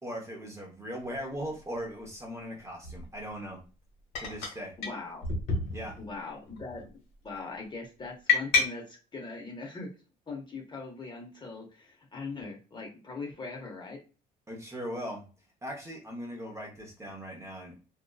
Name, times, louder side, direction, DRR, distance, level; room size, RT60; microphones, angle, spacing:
voice 1, 0.0-3.6 4.2-4.7 5.7-6.0 14.5-15.2 15.6-17.7, equal, 15° right, 0 dB, 0.8 m, -39 dB
sound 1, 1.1-1.2 2.8-3.1 4.1-4.6 4.8-4.9 5.2-6.1 6.5-6.8 8.3-8.6, left 5 dB, 75° left, 1.1 m, -28 dB
voice 2, 4.8-5.3 6.0-6.9 7.2-9.9 10.3-14.0, left 3 dB, 25° left, 0 dB, 0.7 m, -40 dB
2.6 x 2.2 x 2.2 m, 0.35 s
cardioid pair, 110°, 17 cm